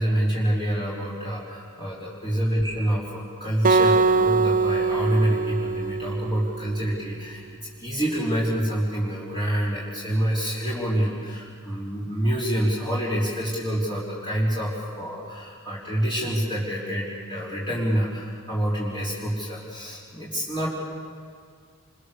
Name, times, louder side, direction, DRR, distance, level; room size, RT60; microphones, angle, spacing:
voice 1, 0.0-20.7, right 1 dB, 25° left, -7 dB, 3.9 m, -27 dB
Acoustic guitar, 3.6-6.9, right 3 dB, 40° right, 0.7 m, -22 dB
27.0 x 24.0 x 6.8 m, 2.1 s
head